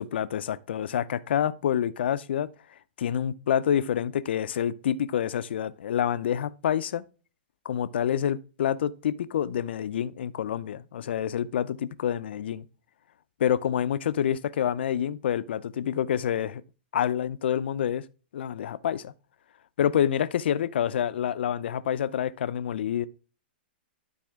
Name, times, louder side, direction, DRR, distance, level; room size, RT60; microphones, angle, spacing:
voice 1, 0.0-2.5 3.0-7.0 7.6-12.6 13.4-16.6 16.9-18.0 18.3-19.1 19.8-23.1, left 9 dB, 70° left, 0.6 m, -27 dB
12.0 x 4.2 x 3.6 m
hypercardioid pair, 135°, 6 cm